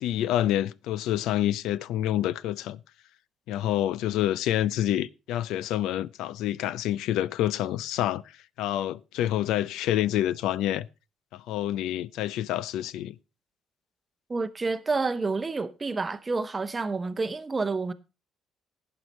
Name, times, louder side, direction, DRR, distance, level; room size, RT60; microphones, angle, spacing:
voice 1, 0.0-2.8 3.5-8.2 8.6-10.9 11.3-13.2, left 12 dB, 80° left, 0.5 m, -27 dB
voice 2, 14.3-17.9, right 3 dB, 15° right, 0.8 m, -29 dB
11.5 x 9.5 x 4.2 m
cardioid pair, 175°, 0 cm